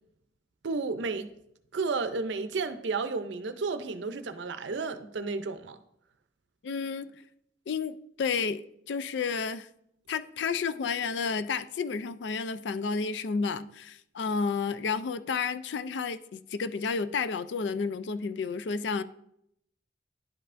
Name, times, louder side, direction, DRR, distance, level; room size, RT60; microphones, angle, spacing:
voice 1, 0.6-1.3 1.7-5.8, right 4 dB, 85° right, 0.5 m, -32 dB
voice 2, 6.6-7.1 7.7-9.7 10.1-19.0, left 5 dB, 80° left, 0.4 m, -31 dB
11.0 x 5.5 x 2.5 m
head